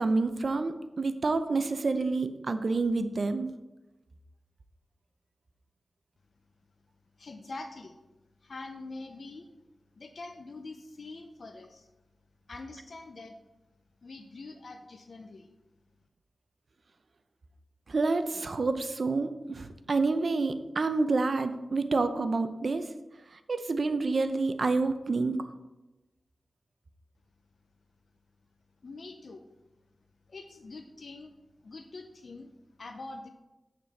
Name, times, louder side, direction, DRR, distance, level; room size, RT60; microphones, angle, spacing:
voice 1, 0.0-3.5 17.9-22.9 23.3-25.4, right 3 dB, 55° right, 10 dB, 0.6 m, -28 dB
voice 2, 7.2-8.0 8.4-9.5 10.0-11.9 12.5-13.4 14.0-15.5 28.8-29.5 30.3-31.3 31.6-32.5 32.8-33.3, left 3 dB, 60° left, 6 dB, 0.6 m, -44 dB
8.7 x 6.0 x 4.2 m, 1.0 s
wide cardioid pair, 95°, 0 cm